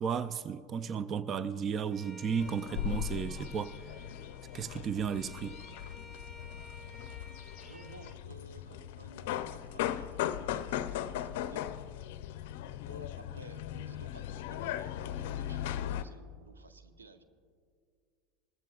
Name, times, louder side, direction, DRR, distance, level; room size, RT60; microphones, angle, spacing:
voice 1, 0.0-3.8 4.5-5.6, right 7 dB, 35° right, 0.4 m, -34 dB
Bowed string instrument, 1.9-8.2, left 1 dB, 15° right, 1.5 m, -53 dB
sound 1, 2.4-16.0, left 11 dB, 65° left, 0.5 m, -38 dB
voice 2, 7.6-11.7 12.8-17.2, right 4 dB, 90° right, 0.8 m, -54 dB
20.0 x 15.0 x 2.4 m
hypercardioid pair, 85°, 0 cm